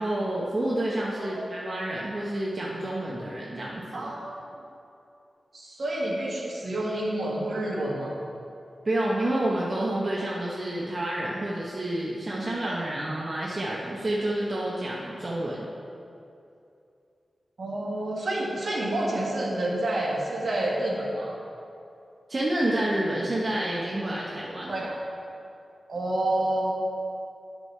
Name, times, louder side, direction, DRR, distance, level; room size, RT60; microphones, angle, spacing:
voice 1, 0.0-4.1 8.8-15.6 22.3-24.9, right 1 dB, 35° right, -5 dB, 0.8 m, -29 dB
voice 2, 3.9-4.4 5.5-8.1 12.6-12.8 17.6-21.4 24.7-25.0 25.9-26.8, right 1 dB, 60° right, -4 dB, 1.6 m, -29 dB
10.5 x 6.1 x 3.3 m, 2.6 s
wide cardioid pair, 135°, 0 cm